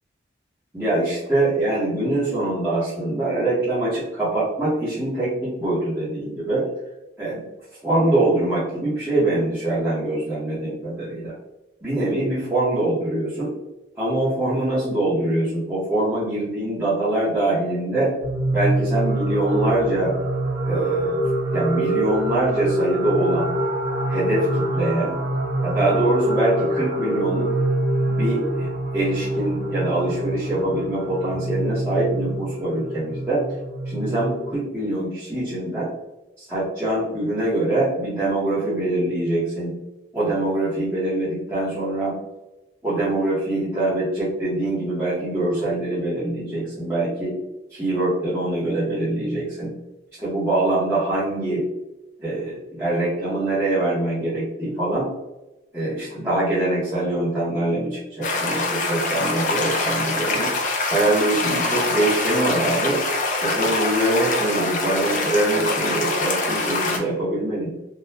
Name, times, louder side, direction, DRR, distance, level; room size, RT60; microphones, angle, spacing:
voice 1, 0.7-6.6 7.2-7.4 7.8-11.3 11.8-13.5 14.0-18.1 18.5-20.1 20.6-21.2 21.5-23.5 24.1-25.2 25.6-27.5 28.2-33.4 33.8-35.9 36.4-39.7 40.1-42.2 42.8-47.4 47.7-49.7 50.2-51.6 52.2-55.1 55.7-60.5 60.9-63.0 63.4-67.7, right 1 dB, 15° right, -13 dB, 1.0 m, -23 dB
sound 1, 18.2-34.6, right 1 dB, 65° right, 0.8 m, -25 dB
sound 2, 58.2-67.0, left 3 dB, 45° left, 0.5 m, -24 dB
3.7 x 2.3 x 2.7 m, 1.0 s
head